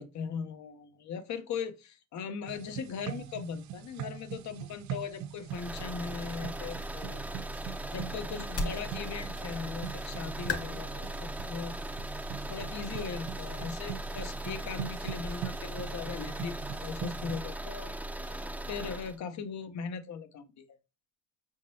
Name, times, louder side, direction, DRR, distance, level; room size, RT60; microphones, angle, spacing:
voice 1, 0.0-7.2 7.9-11.7 12.5-16.6 16.8-20.6, left 6 dB, 65° left, 0.8 m, -39 dB
sound 1, 2.5-17.4, right 11 dB, 70° right, 0.4 m, -43 dB
sound 2, 5.5-19.2, right 1 dB, 5° right, 0.5 m, -39 dB
sound 3, 8.2-13.8, left 3 dB, 50° left, 1.2 m, -41 dB
5.1 x 3.7 x 2.7 m
cardioid pair, 90°, 30 cm